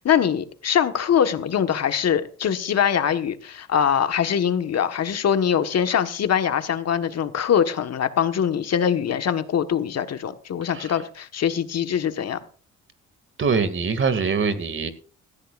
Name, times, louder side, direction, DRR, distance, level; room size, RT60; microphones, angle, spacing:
voice 1, 0.0-12.4, left 8 dB, 55° left, 1.5 m, -23 dB
voice 2, 13.4-14.9, right 5 dB, 40° right, 2.3 m, -23 dB
17.0 x 14.5 x 2.5 m
cardioid pair, 90°, 30 cm